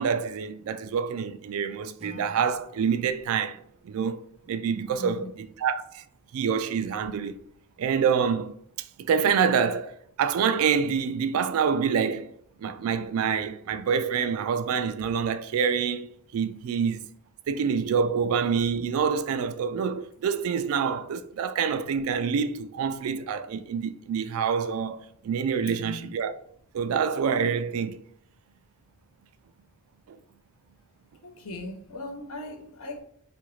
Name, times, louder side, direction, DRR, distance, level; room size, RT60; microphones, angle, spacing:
voice 1, 0.0-3.6 3.8-4.2 4.5-5.3 5.6-6.0 6.3-7.4 7.8-8.6 9.0-12.3 12.6-17.1 17.5-26.3 26.7-28.0, right 6 dB, 75° right, 0.3 m, -26 dB
Acoustic guitar / Strum, 2.0-5.1, left 1 dB, 30° right, 0.7 m, -52 dB
voice 2, 5.0-5.3 25.6-26.1 31.2-33.0, left 2 dB, 75° left, 0.6 m, -38 dB
2.8 x 2.5 x 3.1 m
head